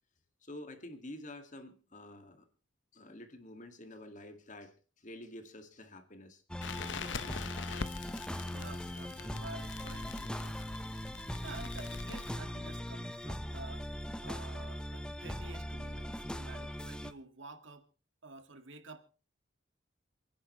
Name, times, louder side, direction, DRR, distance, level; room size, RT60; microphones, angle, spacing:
voice 1, 0.4-2.4 2.9-4.7 5.0-6.4, left 1 dB, 40° left, 2.2 m, -48 dB
sound 1, 6.5-17.1, equal, 5° left, 0.7 m, -40 dB
Crackle, 6.6-12.4, left 5 dB, 65° left, 0.9 m, -44 dB
voice 2, 8.5-10.6 11.4-13.9 14.2-17.9 18.2-19.1, right 3 dB, 70° right, 2.1 m, -50 dB
29.0 x 10.0 x 3.2 m
head